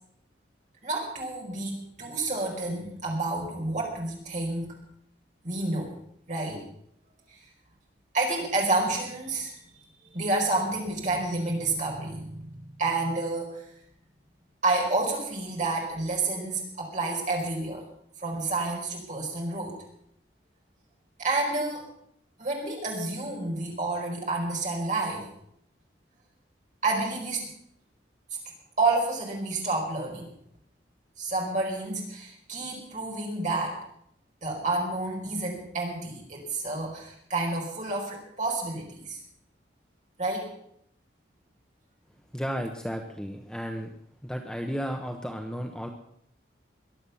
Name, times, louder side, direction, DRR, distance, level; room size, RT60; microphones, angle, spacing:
voice 1, 0.8-4.7 5.4-5.9 6.3-6.6 7.3-7.4 8.1-9.5 10.0-13.7 14.6-17.8 18.2-19.8 21.2-21.8 22.4-25.3 26.8-27.5 28.8-30.3 31.2-33.8 34.4-39.2 40.2-40.5, right 2 dB, 40° right, -1 dB, 4.8 m, -29 dB
voice 2, 42.3-43.9 44.2-45.9, equal, 5° left, 3 dB, 1.0 m, -33 dB
22.0 x 8.1 x 7.1 m, 0.72 s
head